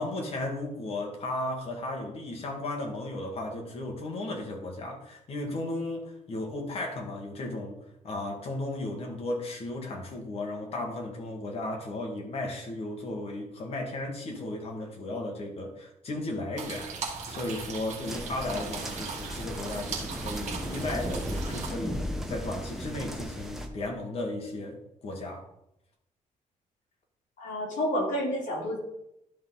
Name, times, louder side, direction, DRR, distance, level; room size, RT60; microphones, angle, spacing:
voice 1, 0.0-7.8 8.0-25.4, left 2 dB, 45° left, 1 dB, 1.8 m, -35 dB
sound 1, 16.6-21.7, right 5 dB, 55° right, 1.4 m, -38 dB
sound 2, 18.1-23.7, equal, 5° right, 0.7 m, -36 dB
voice 2, 27.4-28.8, equal, 65° left, -3 dB, 3.1 m, -29 dB
12.0 x 4.0 x 3.9 m, 0.81 s
cardioid pair, 165°, 14 cm